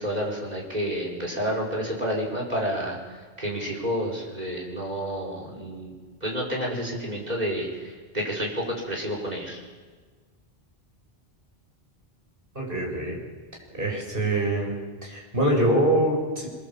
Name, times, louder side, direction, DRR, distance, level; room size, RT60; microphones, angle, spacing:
voice 1, 0.0-5.9 6.2-9.6, equal, 40° right, -1 dB, 5.8 m, -30 dB
voice 2, 12.6-13.2 13.7-14.7 15.0-16.5, right 1 dB, 60° right, -1 dB, 7.1 m, -24 dB
26.0 x 23.5 x 7.6 m, 1.4 s
omnidirectional pair, 1.0 m